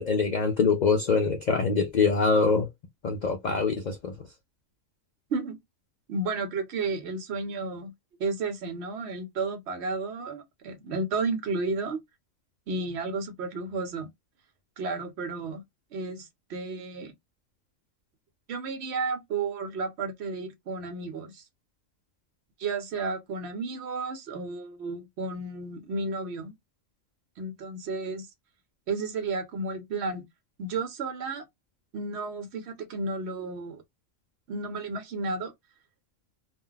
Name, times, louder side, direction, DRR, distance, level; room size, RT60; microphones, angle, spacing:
voice 1, 0.0-2.7 3.0-4.1, left 4 dB, 75° left, 0.4 m, -24 dB
voice 2, 6.1-7.9 8.2-12.0 12.7-14.1 14.8-15.6 15.9-17.1 18.5-21.4 22.6-26.5 27.4-28.3 28.9-30.2 30.6-31.4 31.9-33.8 34.5-35.5, right 3 dB, 60° right, 0.9 m, -32 dB
2.3 x 2.1 x 3.7 m
omnidirectional pair, 1.4 m